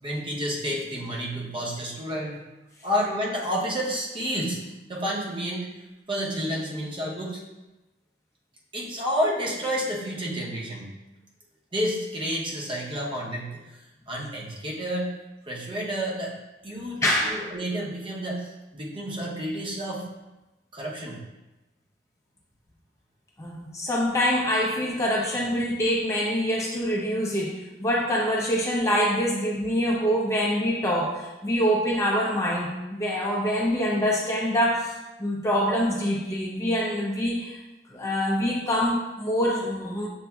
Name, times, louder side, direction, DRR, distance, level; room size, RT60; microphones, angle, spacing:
voice 1, 0.0-2.4 2.8-4.6 4.9-5.7 6.1-7.4 8.7-10.9 11.7-13.6 14.1-15.1 15.5-16.3 16.6-20.1 20.7-21.2, equal, 30° right, -4 dB, 0.8 m, -30 dB
voice 2, 17.0-17.4 23.4-37.6 37.9-40.1, equal, 15° left, -3 dB, 0.5 m, -25 dB
6.8 x 2.6 x 2.3 m, 1.0 s
head